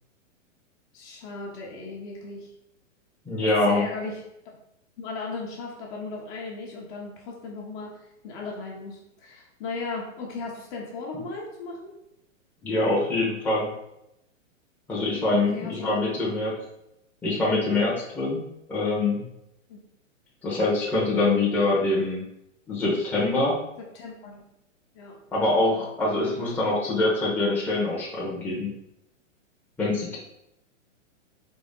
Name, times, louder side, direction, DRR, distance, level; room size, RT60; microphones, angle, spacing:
voice 1, 0.9-2.5 3.4-4.2 5.0-7.9 8.2-11.9 15.3-15.9 19.7-19.8 23.8-24.4 24.9-25.2, left 3 dB, 30° left, -2 dB, 0.9 m, -36 dB
voice 2, 3.2-3.9 12.6-13.7 14.9-16.5 17.2-18.4 18.7-19.2 20.4-22.2 22.7-23.6 25.3-28.7 29.8-30.2, left 2 dB, 5° left, -6 dB, 0.9 m, -24 dB
4.1 x 2.8 x 3.7 m, 0.83 s
hypercardioid pair, 140°, 38 cm